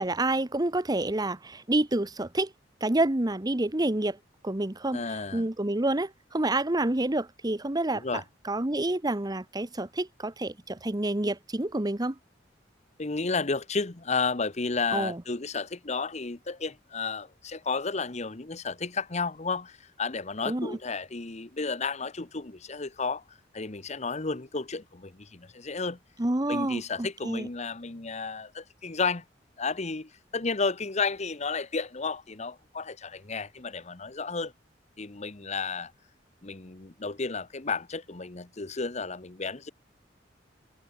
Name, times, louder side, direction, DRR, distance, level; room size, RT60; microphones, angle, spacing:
voice 1, 0.0-2.5 2.8-4.2 4.4-5.0 5.3-8.0 8.5-12.1 14.9-15.2 20.5-20.8 26.2-27.5, right 2 dB, 20° right, 1.1 m, -28 dB
voice 2, 4.9-5.5 7.9-8.2 13.0-26.0 26.5-29.2 29.6-34.5 35.0-35.9 36.4-39.7, left 4 dB, 40° left, 1.1 m, -32 dB
head